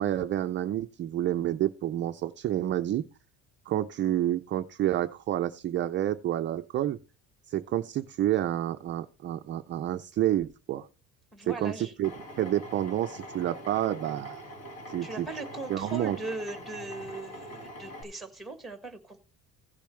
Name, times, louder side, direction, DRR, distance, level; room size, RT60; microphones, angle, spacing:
voice 1, 0.0-3.1 3.7-7.0 7.5-10.9 11.4-12.1 12.4-14.4 14.9-15.3 15.7-16.2, right 12 dB, 35° right, 7 dB, 0.4 m, -29 dB
voice 2, 11.3-11.9 15.0-19.2, right 2 dB, ahead, 7 dB, 1.4 m, -39 dB
Drill, 12.0-18.0, equal, 45° left, 2.2 m, -43 dB
16.0 x 6.8 x 3.2 m, 0.31 s
cardioid pair, 165°, 34 cm